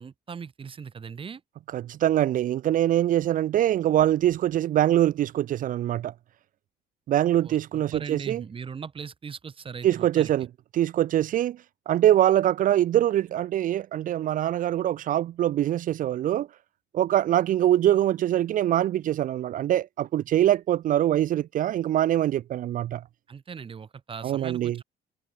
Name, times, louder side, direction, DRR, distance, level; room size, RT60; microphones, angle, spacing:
voice 1, 0.0-1.4 7.4-10.3 23.3-24.8, right 6 dB, 30° right, 1.7 m, -39 dB
voice 2, 1.7-6.1 7.1-8.4 9.8-10.5 10.7-11.6 11.9-16.5 16.9-23.0 24.2-24.8, right 12 dB, 55° right, 0.5 m, -23 dB
cardioid pair, 110°, 17 cm